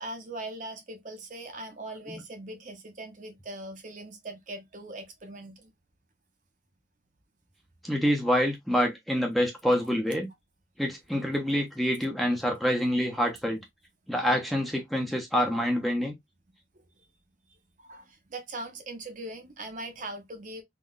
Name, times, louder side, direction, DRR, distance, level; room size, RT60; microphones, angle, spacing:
voice 1, 0.0-5.7 11.5-11.6 16.7-17.1 17.5-20.6, right 2 dB, 45° right, 0.6 m, -41 dB
voice 2, 7.8-10.3 10.8-13.6 14.1-16.1, equal, ahead, 0.5 m, -26 dB
3.7 x 2.1 x 2.3 m
head